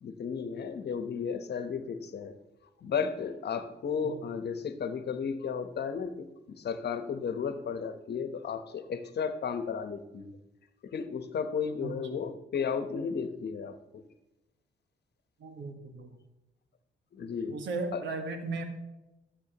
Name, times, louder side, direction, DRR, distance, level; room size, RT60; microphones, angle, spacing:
voice 1, 0.0-2.4 2.8-10.4 10.8-13.8 17.1-17.6 17.9-18.0, left 6 dB, 60° left, 10 dB, 1.1 m, -34 dB
voice 2, 11.8-12.2 15.4-16.1 17.5-18.6, right 3 dB, 80° right, 6 dB, 1.5 m, -36 dB
13.5 x 7.4 x 3.0 m, 0.99 s
cardioid pair, 70°, 19 cm